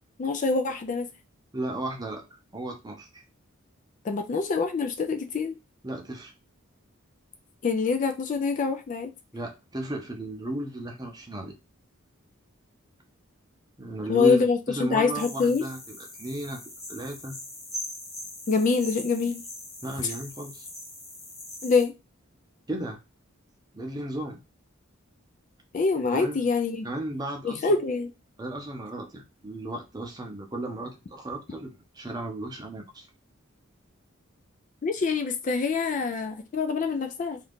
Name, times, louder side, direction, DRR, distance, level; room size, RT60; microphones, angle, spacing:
voice 1, 0.2-1.1 4.0-5.5 7.6-9.1 14.1-15.6 18.5-19.4 21.6-21.9 25.7-26.9 27.4-28.1 34.8-37.4, left 4 dB, 35° left, 0.3 m, -25 dB
voice 2, 1.5-3.2 5.8-6.3 9.3-11.5 13.8-16.6 16.9-17.4 19.8-20.7 22.7-23.0 23.7-24.4 26.1-26.5 26.8-27.7 28.4-33.1, right 1 dB, 20° right, 0.6 m, -34 dB
sound 1, 15.1-21.8, left 1 dB, 15° left, 0.7 m, -41 dB
2.7 x 2.5 x 3.4 m
head